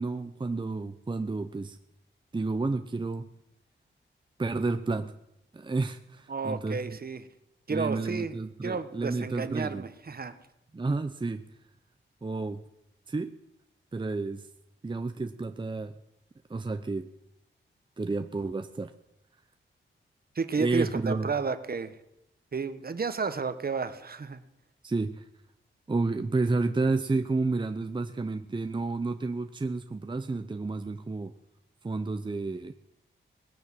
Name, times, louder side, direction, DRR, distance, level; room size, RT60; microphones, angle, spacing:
voice 1, 0.0-1.8 2.3-3.3 4.4-5.1 5.5-7.0 7.7-9.9 10.7-11.5 12.2-12.6 13.1-13.3 13.9-14.5 14.8-15.9 16.5-17.1 18.0-18.9 20.6-21.3 24.8-25.2 25.9-31.3 31.8-32.7, right 3 dB, 25° right, 8 dB, 0.7 m, -31 dB
voice 2, 6.3-7.3 7.7-8.4 8.6-10.3 20.3-21.9 22.5-24.4, right 5 dB, 50° right, 11 dB, 1.3 m, -32 dB
19.5 x 10.0 x 7.5 m, 0.85 s
wide cardioid pair, 85°, 21 cm